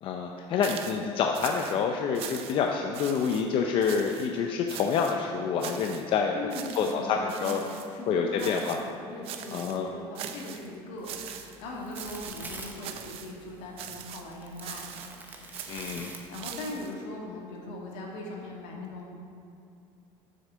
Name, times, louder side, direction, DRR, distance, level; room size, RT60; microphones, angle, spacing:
voice 1, 0.0-6.4 6.8-7.6 8.1-8.8 9.5-9.9 15.7-16.1, left 6 dB, 45° left, 2 dB, 0.6 m, -27 dB
sound 1, 0.6-1.0 1.3-1.8 2.1-2.7 2.9-3.4 3.8-4.3 4.7-5.2 5.6-6.1 6.5-7.0 7.3-7.9 8.4-8.9 9.2-9.8 10.1-10.7 11.0-11.6 11.9-12.5 12.8-13.3 13.8-14.3 14.6-15.2 15.5-16.9, right 9 dB, 55° right, 0.6 m, -41 dB
voice 2, 6.3-14.9 16.3-19.2, left 2 dB, 75° left, -2 dB, 2.1 m, -40 dB
sound 2, 11.0-16.8, right 3 dB, 15° right, 0.9 m, -46 dB
7.8 x 6.6 x 6.2 m, 2.5 s
cardioid pair, 150°, 12 cm